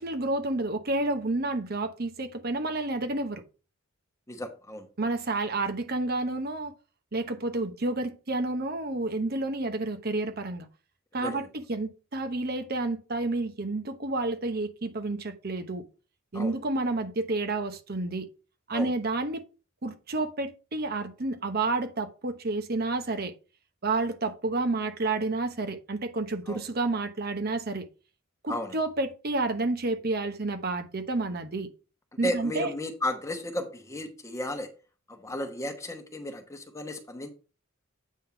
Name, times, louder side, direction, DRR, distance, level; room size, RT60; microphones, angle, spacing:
voice 1, 0.0-3.4 5.0-6.7 7.1-10.7 11.1-15.8 16.3-18.3 18.7-19.4 19.8-23.3 23.8-27.9 28.4-31.7 32.2-32.7, right 2 dB, 50° right, 0.9 m, -30 dB
voice 2, 4.3-4.9 11.2-11.4 16.3-16.5 18.7-18.9 26.5-26.6 28.5-28.7 32.2-34.7 35.1-37.3, left 1 dB, 15° left, 1.0 m, -34 dB
8.4 x 3.6 x 5.8 m
head